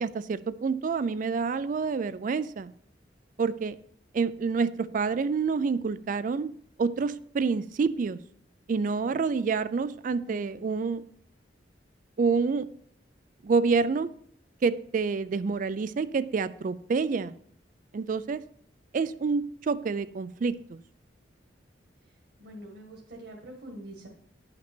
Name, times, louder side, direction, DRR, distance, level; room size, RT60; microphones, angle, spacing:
voice 1, 0.0-2.7 3.4-3.8 4.1-6.5 6.8-8.2 8.7-11.0 12.2-12.7 13.4-14.1 14.6-17.3 17.9-18.4 18.9-20.8, right 5 dB, 45° right, 15 dB, 0.4 m, -28 dB
voice 2, 10.3-10.8 22.4-24.1, right 1 dB, 70° right, 0 dB, 1.7 m, -45 dB
10.0 x 5.8 x 4.4 m, 0.64 s
head